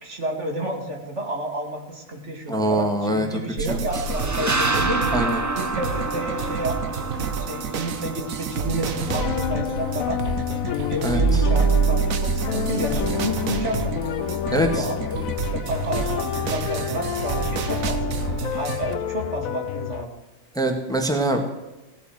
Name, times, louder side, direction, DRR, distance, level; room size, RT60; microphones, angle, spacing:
voice 1, 0.0-5.2 5.5-6.8 7.1-10.2 10.5-13.9 14.2-18.2 18.6-20.1, right 1 dB, 60° right, 2 dB, 2.9 m, -30 dB
voice 2, 2.5-3.3 3.7-3.8 5.1-5.3 11.0-11.2 14.5-14.8 20.6-21.6, right 1 dB, 5° left, 3 dB, 1.7 m, -23 dB
sound 1, 3.6-19.0, right 6 dB, 80° right, 1.4 m, -27 dB
sound 2, 3.9-9.5, right 2 dB, 15° right, 0.9 m, -29 dB
sound 3, 9.1-20.1, left 11 dB, 80° left, 1.0 m, -29 dB
17.0 x 8.1 x 7.8 m, 1.0 s
omnidirectional pair, 1.4 m